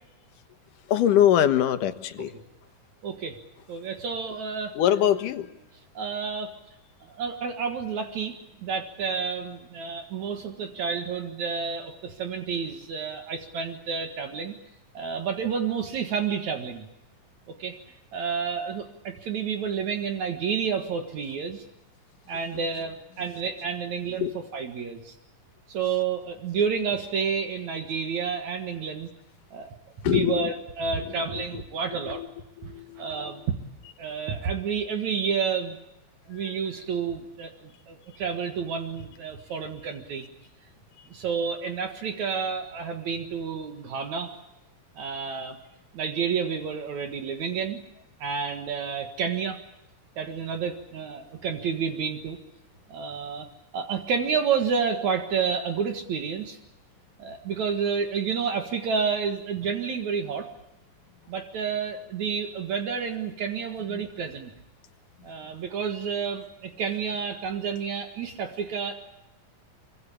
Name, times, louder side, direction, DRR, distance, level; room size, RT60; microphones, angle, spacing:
voice 1, 0.9-2.3 4.8-5.5 24.2-24.3 30.0-30.5 31.0-31.4 32.1-32.3 32.6-33.2 36.4-36.5 63.9-64.0, left 10 dB, 85° left, 10 dB, 2.9 m, -23 dB
voice 2, 3.0-3.4 3.7-4.7 5.9-6.5 7.0-14.5 14.9-16.9 17.6-17.8 18.1-21.6 22.3-25.1 25.7-29.1 29.5-29.8 30.0-32.2 32.6-33.4 34.0-35.8 36.3-40.3 41.1-44.3 45.0-45.6 45.9-47.8 48.2-49.6 50.2-52.4 52.9-53.5 53.7-56.6 57.2-60.5 61.3-64.5 65.2-68.9, right 6 dB, 65° right, 6 dB, 2.9 m, -30 dB
24.5 x 24.0 x 8.6 m, 0.88 s
omnidirectional pair, 3.6 m